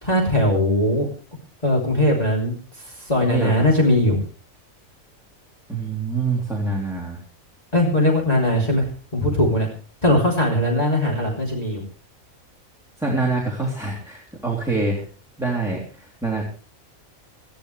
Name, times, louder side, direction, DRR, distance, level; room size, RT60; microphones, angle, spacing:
voice 1, 0.0-1.1 1.6-2.5 3.0-4.2 7.7-8.9 9.1-9.7 10.0-11.8, left 1 dB, 30° left, -3 dB, 3.4 m, -19 dB
voice 2, 3.2-3.7 5.7-7.2 13.0-15.0 15.4-16.4, right 3 dB, ahead, -2 dB, 3.3 m, -25 dB
20.0 x 14.5 x 3.3 m, 0.40 s
omnidirectional pair, 1.4 m